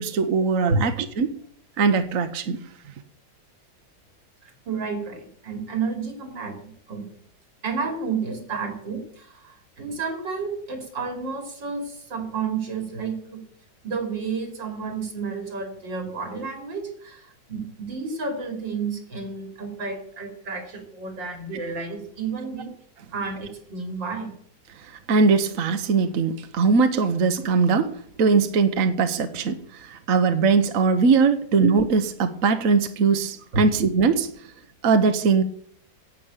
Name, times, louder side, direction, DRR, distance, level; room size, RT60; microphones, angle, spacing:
voice 1, 0.0-1.4 1.8-2.6 25.1-27.9 28.2-34.3 34.8-35.4, right 4 dB, 55° right, 9 dB, 1.2 m, -21 dB
voice 2, 4.7-7.1 7.6-13.4 13.8-22.7 23.1-24.3 33.5-33.6, right 4 dB, 85° right, 4 dB, 3.6 m, -31 dB
10.0 x 8.3 x 8.8 m, 0.63 s
omnidirectional pair, 2.0 m